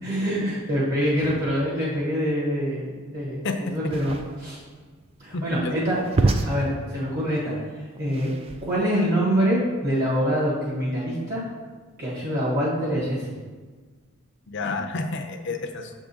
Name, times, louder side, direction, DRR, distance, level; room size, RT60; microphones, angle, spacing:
voice 1, 0.0-4.6 5.2-8.3 8.6-11.4 12.0-13.2, equal, 50° right, -7 dB, 1.5 m, -25 dB
voice 2, 3.4-3.8 5.3-5.8 14.5-15.9, left 3 dB, 55° left, 5 dB, 0.6 m, -30 dB
sound 1, 3.8-9.0, right 3 dB, 25° right, 0.3 m, -29 dB
7.0 x 3.6 x 4.1 m, 1.4 s
head